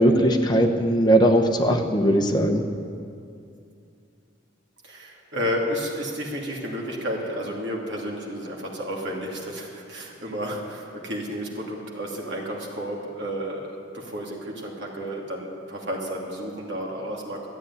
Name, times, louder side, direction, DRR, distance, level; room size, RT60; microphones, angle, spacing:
voice 1, 0.0-2.6, right 1 dB, 20° left, 3 dB, 1.1 m, -19 dB
voice 2, 4.8-17.5, equal, 65° right, -2 dB, 2.6 m, -32 dB
12.5 x 8.7 x 9.7 m, 2.5 s
head